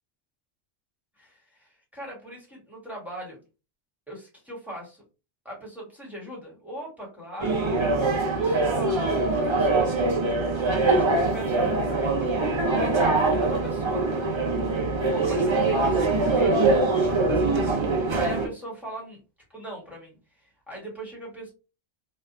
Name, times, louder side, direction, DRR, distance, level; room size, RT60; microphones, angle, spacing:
voice 1, 1.2-3.4 4.1-5.0 5.4-7.7 8.4-10.0 10.4-14.3 15.0-19.2 19.5-21.5, right 1 dB, ahead, -4 dB, 1.0 m, -40 dB
sound 1, 7.4-18.5, right 3 dB, 45° right, 0.4 m, -23 dB
2.8 x 2.2 x 2.4 m, 0.30 s
omnidirectional pair, 1.2 m